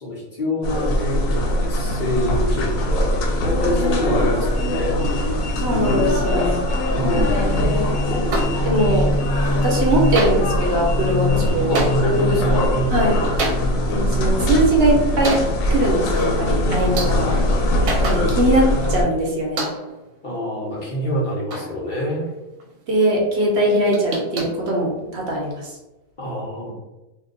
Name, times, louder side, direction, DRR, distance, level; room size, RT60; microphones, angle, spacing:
voice 1, 0.0-5.0 6.9-7.6 9.1-9.2 11.7-12.7 17.1-17.5 20.2-22.3 26.2-26.7, left 1 dB, 45° left, -5 dB, 0.9 m, -26 dB
sound 1, 0.6-19.0, left 1 dB, 85° left, 1.0 m, -21 dB
voice 2, 5.6-6.6 8.6-9.1 9.5-11.7 12.9-13.2 13.9-15.4 15.7-17.3 18.0-19.6 22.9-25.7, right 1 dB, 60° right, -1 dB, 0.9 m, -21 dB
sound 2, 8.3-9.1 9.3-9.9 10.1-18.7 19.0-19.1 19.6-20.1 20.6-22.3 22.6-22.7 23.0-23.1 23.4-25.4, right 2 dB, 90° right, 1.1 m, -30 dB
2.7 x 2.1 x 3.8 m, 1.0 s
omnidirectional pair, 1.4 m